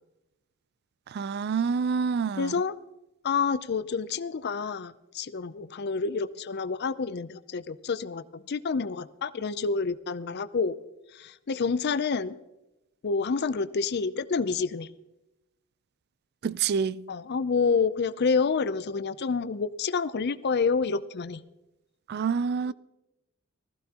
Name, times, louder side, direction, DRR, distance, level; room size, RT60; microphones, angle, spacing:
voice 1, 1.1-2.5 16.4-17.0 22.1-22.7, right 6 dB, 50° right, 0.3 m, -27 dB
voice 2, 2.4-2.8 3.2-10.8 11.1-12.4 13.0-14.9 17.1-21.4 22.7-22.8, left 5 dB, 50° left, 0.5 m, -28 dB
19.5 x 14.5 x 2.9 m
head